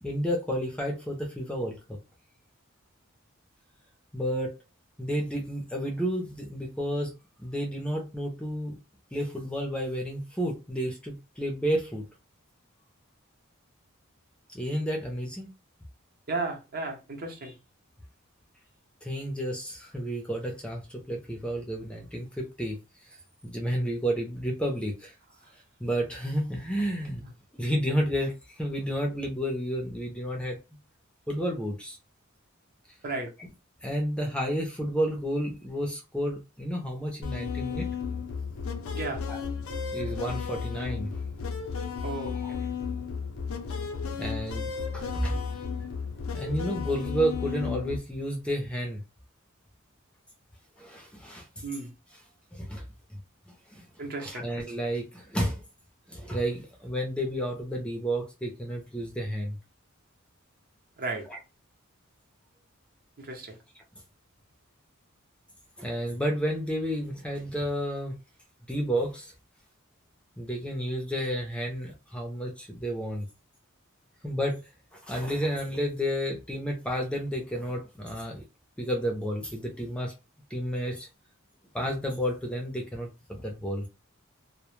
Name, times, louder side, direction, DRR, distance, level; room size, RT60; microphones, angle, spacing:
voice 1, 0.0-2.0 4.1-4.6 5.0-7.1 7.4-8.8 9.1-12.0 14.5-15.5 19.0-22.8 23.4-25.1 25.8-27.2 27.6-30.6 31.3-32.0 33.4-33.5 33.8-37.9 39.3-39.4 39.9-41.1 42.4-42.5 44.2-45.4 46.3-49.0 50.8-51.5 52.5-52.8 53.7-53.8 54.2-55.6 56.1-59.6 61.3-61.4 65.8-68.1 68.7-69.3 70.4-73.3 74.2-74.6 74.9-78.4 78.8-80.1 80.5-81.1 81.7-83.8, equal, 5° left, 0.4 m, -31 dB
voice 2, 16.3-17.6 33.0-33.3 38.9-39.2 42.0-42.4 51.6-51.9 54.0-54.5 61.0-61.3 63.2-63.6, right 3 dB, 45° right, 0.7 m, -34 dB
sound 1, 37.2-48.0, left 6 dB, 80° left, 0.5 m, -33 dB
2.1 x 2.0 x 3.0 m
head